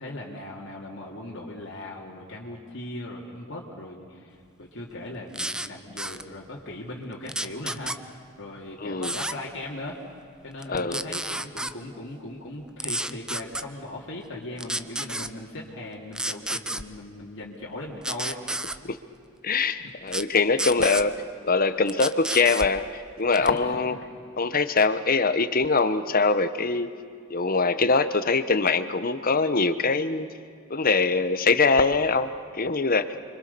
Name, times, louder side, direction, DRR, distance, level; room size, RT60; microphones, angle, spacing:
voice 1, 0.0-8.1 8.4-10.0 10.4-18.4 19.8-19.9 23.4-23.8, left 1 dB, 60° left, -3 dB, 2.7 m, -38 dB
sound 1, 5.3-5.7 6.0-6.2 7.3-8.0 9.0-9.3 10.6-11.7 12.8-13.6 14.6-15.3 16.1-16.8 18.0-18.8 20.1-20.2 20.6-21.0 21.9-22.7 23.3-23.6, right 1 dB, 5° right, 0.6 m, -30 dB
voice 2, 8.8-9.1 10.7-11.0 18.8-19.0 19.4-24.0 24.4-26.9 27.3-30.3 30.7-33.1, left 4 dB, 45° left, 11 dB, 1.1 m, -23 dB
30.0 x 24.5 x 6.9 m, 2.4 s
head